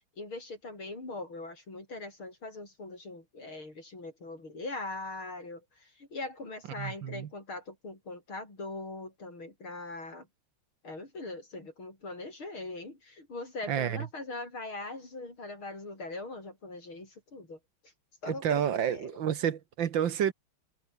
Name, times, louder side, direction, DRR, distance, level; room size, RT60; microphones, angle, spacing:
voice 1, 0.2-10.3 10.8-17.6 18.2-19.1, left 2 dB, 80° left, 8.5 m, -41 dB
voice 2, 6.8-7.3 13.7-14.0 18.3-20.3, right 9 dB, 65° right, 1.9 m, -29 dB
omnidirectional pair, 2.2 m